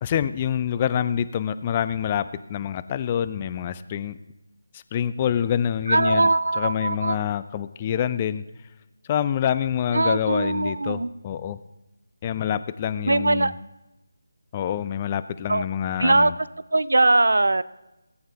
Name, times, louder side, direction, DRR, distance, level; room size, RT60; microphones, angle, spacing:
voice 1, 0.0-4.2 4.7-6.3 6.6-8.4 9.1-11.6 12.2-13.5 14.5-16.3, left 9 dB, 25° left, 13 dB, 0.4 m, -26 dB
voice 2, 5.9-7.2 9.9-11.1 13.1-13.5 15.5-15.6 16.0-16.3 16.7-17.6, right 2 dB, 70° right, 17 dB, 0.5 m, -20 dB
18.0 x 8.7 x 2.8 m, 0.97 s
figure-of-eight pair, 155°, 0 cm